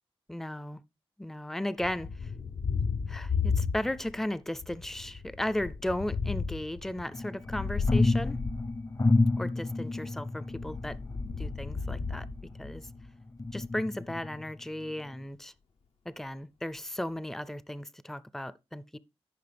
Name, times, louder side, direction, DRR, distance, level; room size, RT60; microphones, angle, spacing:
voice 1, 0.3-0.8 1.2-2.3 3.1-8.4 9.4-11.0 11.4-12.3 12.6-12.9 13.5-15.5 16.1-19.0, left 1 dB, 5° left, 0.4 m, -35 dB
Thunder, 1.8-4.2 4.5-9.4 10.4-13.1, left 5 dB, 70° left, 0.8 m, -34 dB
sound 1, 7.1-12.9 13.4-14.5 15.0-15.1, left 2 dB, 35° left, 0.7 m, -30 dB
13.5 x 5.3 x 3.4 m
wide cardioid pair, 85°, 10 cm